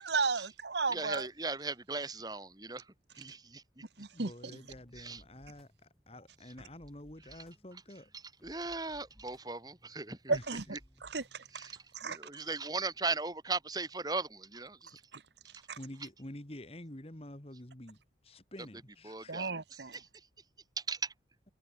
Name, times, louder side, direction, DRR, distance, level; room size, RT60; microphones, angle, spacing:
voice 1, 0.0-1.3 4.0-4.3 10.3-10.6 11.0-11.4 11.9-12.2 15.1-15.2 15.7-15.8 19.3-20.0, right 4 dB, 70° right, 1.3 m, -33 dB
voice 2, 0.9-2.9 3.2-3.8 5.0-5.2 8.1-10.4 11.5-15.0 19.0-20.1 20.8-21.1, right 3 dB, 20° right, 2.3 m, -38 dB
voice 3, 4.1-8.1 10.3-10.4 15.8-19.4, left 1 dB, 30° left, 2.0 m, -48 dB
sound 1, 4.6-12.2, equal, ahead, 5.7 m, -63 dB
head